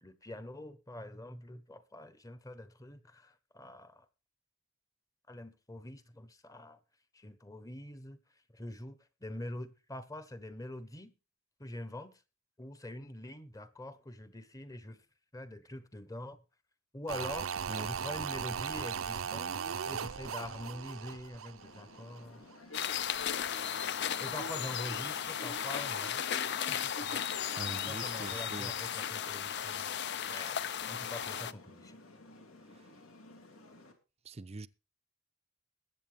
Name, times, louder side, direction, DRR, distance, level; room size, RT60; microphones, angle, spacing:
voice 1, 0.0-4.1 5.3-6.8 7.1-8.2 8.5-11.1 11.6-12.2 12.6-15.0 15.3-16.4 16.9-17.5 17.8-22.5 24.2-26.2 26.5-27.2 27.9-29.9 30.3-32.0, left 1 dB, 15° left, 1.0 m, -45 dB
sound 1, 17.1-22.2 22.5-22.6, right 7 dB, 70° right, 0.6 m, -38 dB
sound 2, 21.6-33.9, left 1 dB, 80° left, 2.7 m, -51 dB
sound 3, 22.7-31.5, left 9 dB, 55° left, 0.6 m, -35 dB
voice 2, 27.6-28.7 32.8-32.9 34.2-34.7, right 3 dB, 30° right, 0.5 m, -43 dB
21.0 x 8.2 x 3.4 m
head